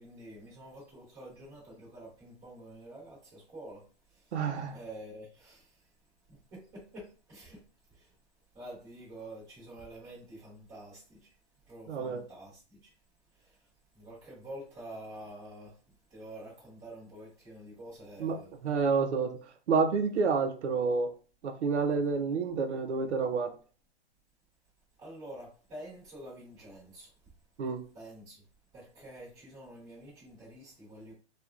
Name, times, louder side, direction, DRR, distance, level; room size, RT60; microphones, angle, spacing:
voice 1, 0.0-3.8 4.1-4.4 4.7-5.9 6.3-7.6 7.9-8.1 8.5-11.3 11.6-12.9 13.3-13.7 13.9-15.7 16.1-18.5 25.0-27.1 27.9-28.4 28.7-31.1, right 1 dB, 10° right, 1.0 m, -48 dB
voice 2, 4.3-4.7 11.9-12.2 18.2-18.4 18.6-19.4 19.7-21.1 21.4-23.5 27.6-27.8, right 5 dB, 80° right, 0.6 m, -29 dB
3.1 x 2.3 x 2.3 m
hypercardioid pair, 175°, 34 cm